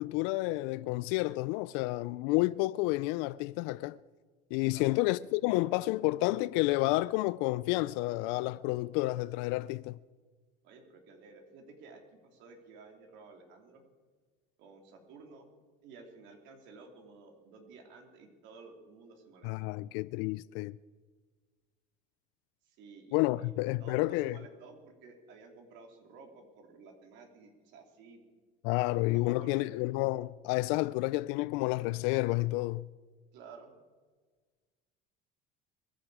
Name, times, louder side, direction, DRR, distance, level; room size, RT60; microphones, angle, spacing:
voice 1, 0.0-4.0 4.5-10.0 19.4-20.7 23.1-24.4 28.6-32.9, left 20 dB, 80° left, 0.4 m, -30 dB
voice 2, 10.6-13.8 14.6-15.5 15.8-19.5 22.7-23.5 23.8-28.2 28.9-29.7 33.3-33.8, right 4 dB, 70° right, 3.2 m, -53 dB
23.5 x 10.5 x 4.9 m
supercardioid pair, 105°, 19 cm